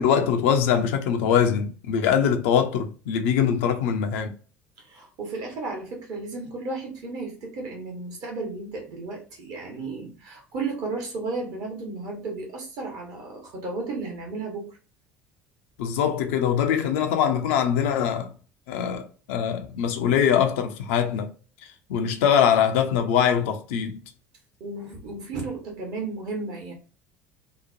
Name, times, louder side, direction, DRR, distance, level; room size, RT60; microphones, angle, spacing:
voice 1, 0.0-4.3 15.8-18.3 18.7-21.3 21.6-24.0, left 8 dB, 60° left, 0.4 m, -23 dB
voice 2, 4.8-14.8 24.6-26.7, right 3 dB, 50° right, 1.0 m, -34 dB
2.8 x 2.1 x 2.5 m
figure-of-eight pair, 60°, 7 cm